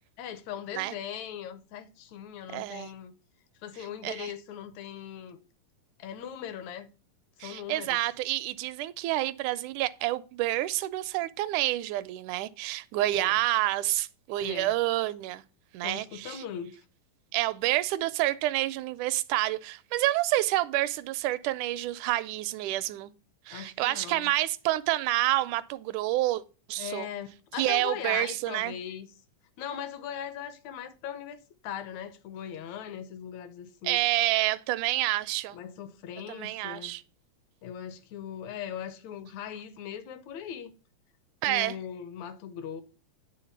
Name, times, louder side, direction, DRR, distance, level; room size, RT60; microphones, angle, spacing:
voice 1, 0.2-3.1 3.6-5.4 6.0-6.9 7.4-8.0 13.1-13.4 14.4-14.7 15.8-16.8 23.5-24.4 26.8-29.1 29.6-31.4 31.6-34.0 35.5-37.0 37.6-40.7 41.5-42.8, left 9 dB, 70° left, 2.0 m, -39 dB
voice 2, 2.5-2.9 4.0-4.3 7.4-15.4 15.7-16.4 17.3-23.1 23.5-26.4 26.7-27.1 27.6-28.7 33.8-35.6 36.3-37.0 41.4-41.8, right 16 dB, 80° right, 2.0 m, -28 dB
10.0 x 3.5 x 7.1 m
omnidirectional pair, 3.6 m